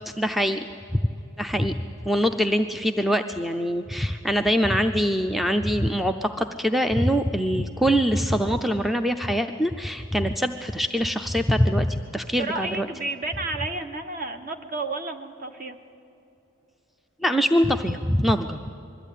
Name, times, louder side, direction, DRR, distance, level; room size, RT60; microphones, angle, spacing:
voice 1, 0.2-0.6 0.9-1.0 1.4-1.8 2.1-12.9 17.2-18.6, equal, ahead, 7 dB, 0.4 m, -23 dB
voice 2, 12.4-15.8, right 2 dB, 40° right, 7 dB, 1.2 m, -31 dB
21.0 x 14.0 x 10.0 m, 2.8 s
head